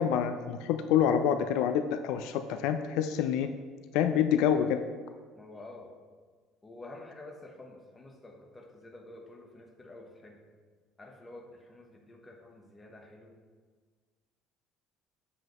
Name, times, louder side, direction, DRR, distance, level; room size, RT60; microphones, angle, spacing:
voice 1, 0.0-3.5 3.9-4.8, left 8 dB, 75° left, 9 dB, 0.4 m, -27 dB
voice 2, 5.3-5.9 6.6-10.4 11.0-13.4, left 2 dB, 15° left, 1 dB, 0.9 m, -49 dB
7.6 x 7.6 x 3.0 m, 1.5 s
cardioid pair, 160°, 0 cm